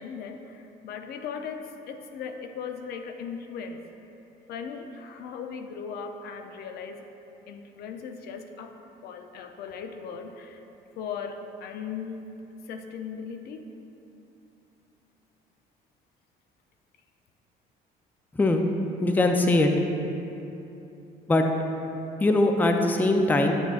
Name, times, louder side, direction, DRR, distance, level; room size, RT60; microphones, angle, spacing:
voice 1, 0.0-3.8 4.5-7.1 7.5-8.7 9.0-10.6 11.0-12.3 12.7-13.6, left 6 dB, 70° left, 6 dB, 0.5 m, -38 dB
voice 2, 19.0-19.7 21.3-21.5 22.2-23.6, left 2 dB, 10° left, 4 dB, 0.4 m, -21 dB
8.1 x 6.0 x 2.4 m, 2.9 s
cardioid pair, 110°, 17 cm